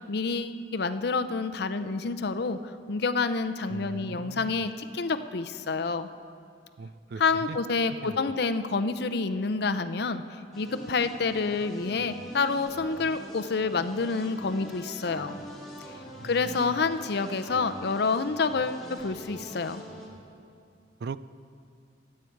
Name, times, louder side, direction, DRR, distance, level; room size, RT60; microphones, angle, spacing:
voice 1, 0.1-2.6 2.9-6.1 7.2-15.4 15.9-16.0 16.2-19.8, left 4 dB, 65° left, 10 dB, 0.6 m, -28 dB
voice 2, 3.7-4.6 6.8-7.6 8.0-8.2 16.2-16.9 21.0-21.2, right 4 dB, 65° right, 15 dB, 0.4 m, -40 dB
sound 1, 10.5-20.1, equal, ahead, 3.2 m, -43 dB
24.0 x 8.6 x 4.6 m, 2.4 s
head